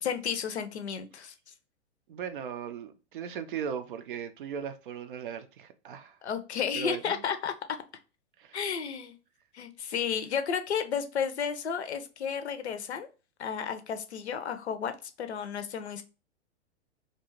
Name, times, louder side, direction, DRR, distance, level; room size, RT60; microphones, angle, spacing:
voice 1, 0.0-1.3 6.2-7.5 8.5-9.1 9.5-13.1 13.4-14.9 15.2-16.0, left 7 dB, 70° left, 0.5 m, -32 dB
voice 2, 2.1-6.2 6.8-7.2 8.4-8.6, right 7 dB, 50° right, 0.4 m, -38 dB
2.5 x 2.3 x 2.9 m
figure-of-eight pair, 105°, 35 cm